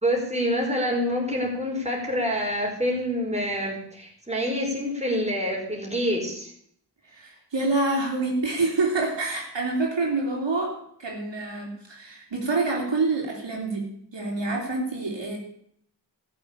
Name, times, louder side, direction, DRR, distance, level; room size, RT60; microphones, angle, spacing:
voice 1, 0.0-6.5, equal, 15° right, -1 dB, 4.6 m, -26 dB
voice 2, 7.1-10.7 11.0-13.8 14.1-15.4, right 3 dB, 75° right, 0 dB, 3.2 m, -27 dB
14.0 x 7.0 x 8.6 m, 0.66 s
wide cardioid pair, 65°, 44 cm